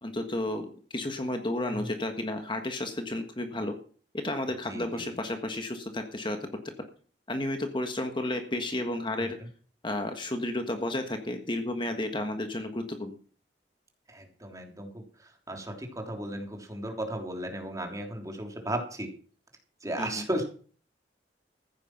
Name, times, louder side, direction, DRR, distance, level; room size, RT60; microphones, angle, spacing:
voice 1, 0.0-3.8 4.1-6.7 7.3-9.4 9.8-13.2 20.0-20.2, left 1 dB, 25° left, 6 dB, 1.5 m, -32 dB
voice 2, 4.7-5.1 14.1-14.9 15.2-19.1 19.8-20.5, right 1 dB, 20° right, 3 dB, 3.2 m, -35 dB
15.0 x 9.6 x 6.0 m, 0.43 s
head